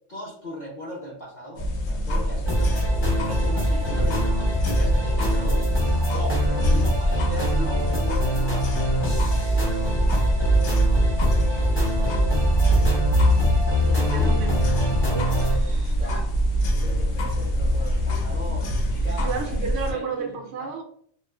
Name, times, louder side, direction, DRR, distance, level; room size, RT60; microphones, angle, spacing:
voice 1, 0.1-4.3 4.6-5.7 6.1-8.9 11.2-11.9 13.8-14.5 16.0-16.3 16.7-20.7, equal, 45° left, -5 dB, 0.7 m, -38 dB
sound 1, 1.6-19.9, equal, 75° left, 0.8 m, -24 dB
sound 2, 2.4-15.5, right 1 dB, 15° left, 0.4 m, -25 dB
voice 2, 6.5-6.8 13.9-14.6 15.1-16.0 19.0-20.8, right 5 dB, 65° right, 1 dB, 0.8 m, -33 dB
2.5 x 2.4 x 2.3 m, 0.63 s
omnidirectional pair, 1.2 m